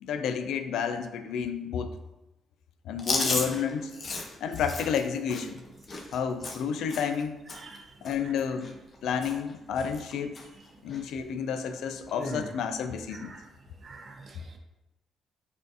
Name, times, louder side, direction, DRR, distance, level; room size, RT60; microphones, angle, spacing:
voice 1, 0.0-1.9 2.9-3.9 4.4-5.6 6.1-7.4 8.0-8.7 9.0-10.3 10.8-13.3, left 7 dB, 80° left, 9 dB, 0.3 m, -30 dB
Chewing mastication, 3.0-7.2 7.5-7.8 8.0-9.0 9.2-9.5 9.8-10.5 10.9-11.0 12.1-12.5, left 3 dB, 45° left, 0.7 m, -34 dB
voice 2, 7.5-8.0 8.2-8.3 12.3-12.4 13.1-13.5 13.8-14.6, right 4 dB, 45° right, 4 dB, 0.6 m, -47 dB
6.1 x 2.6 x 2.6 m, 0.98 s
cardioid pair, 90°, 0 cm